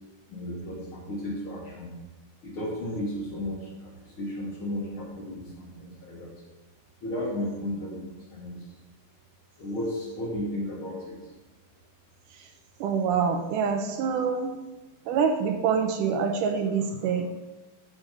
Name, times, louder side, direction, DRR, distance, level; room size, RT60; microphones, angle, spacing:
voice 1, 0.3-1.9 2.4-6.3 7.0-8.6 9.6-11.2, left 1 dB, 45° left, -4 dB, 2.0 m, -34 dB
voice 2, 12.8-14.6 15.1-17.3, right 6 dB, 80° right, 6 dB, 2.1 m, -26 dB
11.5 x 5.3 x 5.1 m, 1.1 s
omnidirectional pair, 3.9 m